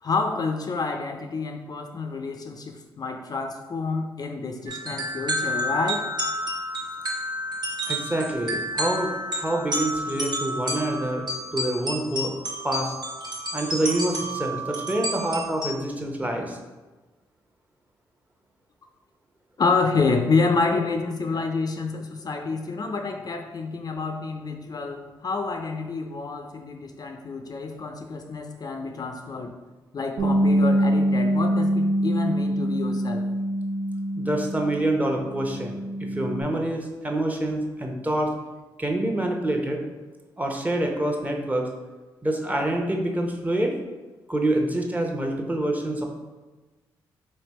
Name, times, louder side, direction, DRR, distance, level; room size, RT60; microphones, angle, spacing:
voice 1, 0.0-6.1 19.6-29.6 29.9-33.2, left 4 dB, 45° left, 4 dB, 0.4 m, -28 dB
sound 1, 4.7-15.7, equal, 50° right, 1.0 m, -30 dB
voice 2, 7.9-12.3 12.6-12.9 13.5-16.6 34.2-38.3 38.8-39.8 40.4-41.7 42.2-43.8 44.3-46.1, right 1 dB, 15° right, 1 dB, 0.8 m, -26 dB
Bass guitar, 30.2-34.9 35.2-36.4, equal, 80° right, 0.7 m, -24 dB
3.3 x 2.7 x 4.1 m, 1.2 s
supercardioid pair, 50°, 9 cm